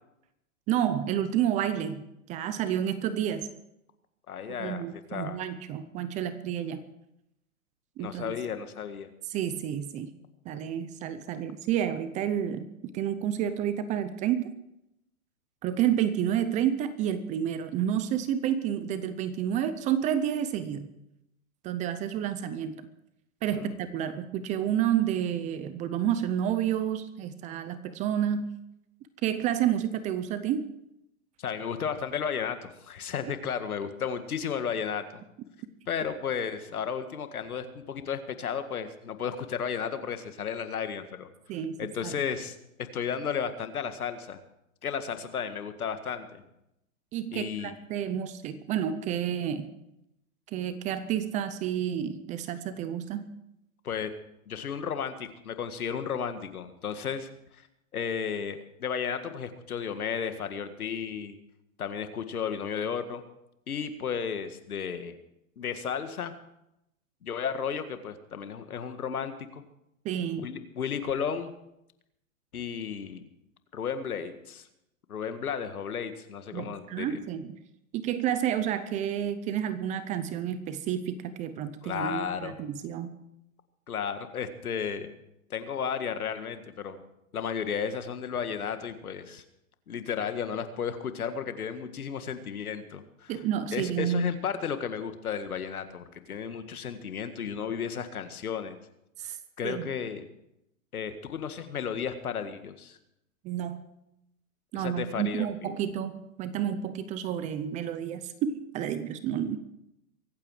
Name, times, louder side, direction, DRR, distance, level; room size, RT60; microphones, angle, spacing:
voice 1, 0.7-2.0 2.3-3.5 4.6-6.8 8.0-8.3 9.3-10.2 10.5-12.7 12.9-14.5 15.6-20.9 21.6-22.8 23.4-28.5 29.2-30.7 41.5-42.2 47.1-49.7 50.5-53.3 70.0-70.5 76.5-77.6 77.9-83.1 93.3-94.2 99.2-99.4 99.6-99.9 103.4-103.8 104.7-109.6, right 10 dB, 15° right, 13 dB, 0.6 m, -30 dB
voice 2, 4.3-5.4 8.0-9.1 23.5-23.7 31.4-35.2 35.9-41.3 41.8-42.6 42.9-44.4 44.8-46.4 47.3-47.7 53.8-54.1 54.5-57.3 57.9-61.4 61.8-63.2 63.7-65.2 65.6-66.3 67.2-69.6 70.4-71.5 72.5-73.2 73.7-74.7 75.1-77.2 81.8-82.5 83.9-85.1 85.5-87.0 87.3-89.4 89.9-93.3 93.7-98.8 99.2-100.3 100.9-103.0 104.7-105.5, left 7 dB, 80° left, 9 dB, 1.9 m, -33 dB
23.5 x 9.0 x 4.9 m, 0.83 s
hypercardioid pair, 130°, 43 cm